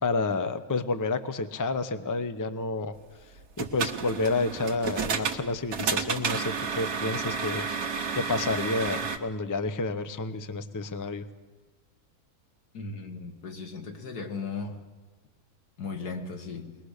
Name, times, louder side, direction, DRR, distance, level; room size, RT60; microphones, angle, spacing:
voice 1, 0.0-2.9 3.6-7.7 8.1-11.2, left 3 dB, 20° left, 0.6 m, -30 dB
sound 1, 3.4-9.2, right 6 dB, 75° right, 1.7 m, -31 dB
voice 2, 12.7-14.8 15.8-16.8, left 4 dB, 85° left, 2.3 m, -37 dB
21.5 x 20.5 x 6.6 m
omnidirectional pair, 1.6 m